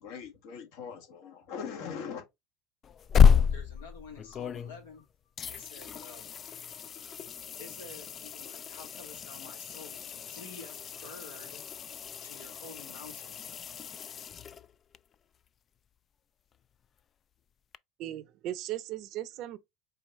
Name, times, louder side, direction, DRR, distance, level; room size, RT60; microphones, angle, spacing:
voice 1, 0.0-2.2, left 6 dB, 70° left, 1.6 m, -41 dB
sound 1, 2.8-5.0 5.4-15.0 17.7-17.8, left 7 dB, 40° left, 0.3 m, -30 dB
voice 2, 3.4-5.1 5.5-6.9 7.5-11.8 12.2-13.7, left 3 dB, 90° left, 2.3 m, -50 dB
voice 3, 18.0-19.6, right 13 dB, 60° right, 0.6 m, -37 dB
4.8 x 3.1 x 3.1 m
hypercardioid pair, 80°, 0 cm